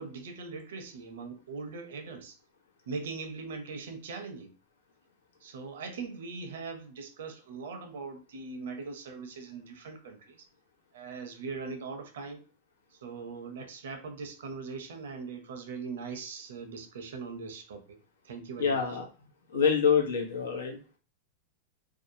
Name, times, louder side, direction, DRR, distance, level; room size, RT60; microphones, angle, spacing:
voice 1, 0.0-2.4 2.9-4.5 5.4-10.5 10.9-12.4 13.0-18.0 18.2-19.0, right 4 dB, 75° right, 0.6 m, -41 dB
voice 2, 18.6-19.0 19.5-20.8, left 6 dB, 85° left, 0.8 m, -26 dB
2.6 x 2.2 x 2.7 m
hypercardioid pair, 115°, 0 cm